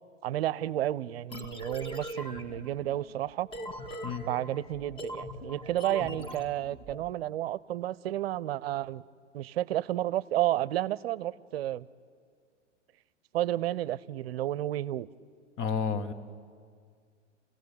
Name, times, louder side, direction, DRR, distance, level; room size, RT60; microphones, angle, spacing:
voice 1, 0.2-3.5 4.3-9.0 9.3-11.9 13.3-15.1, right 13 dB, 55° right, 20 dB, 0.7 m, -31 dB
sound 1, 1.3-7.0, equal, 15° left, 1.9 m, -41 dB
voice 2, 15.6-16.1, left 6 dB, 35° left, 10 dB, 1.5 m, -30 dB
29.5 x 16.5 x 8.6 m, 2.1 s
figure-of-eight pair, 105°, 36 cm